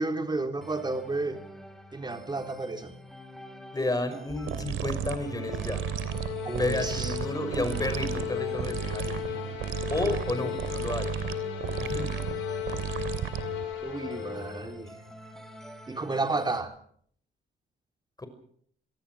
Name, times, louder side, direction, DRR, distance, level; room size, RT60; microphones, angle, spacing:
voice 1, 0.0-1.4 1.9-2.9 6.4-7.1 13.8-15.0 15.9-16.7, right 3 dB, 20° right, 5 dB, 3.8 m, -31 dB
sound 1, 0.6-16.6, equal, ahead, 4.5 m, -48 dB
voice 2, 3.7-5.8 6.4-9.4 9.9-11.2 11.8-12.2 18.2-18.3, left 2 dB, 20° left, 10 dB, 5.9 m, -32 dB
sound 2, 4.3-14.9, left 12 dB, 90° left, 5.9 m, -36 dB
sound 3, 4.5-13.7, right 10 dB, 80° right, 2.9 m, -34 dB
26.5 x 18.5 x 6.3 m, 0.62 s
cardioid pair, 90°, 20 cm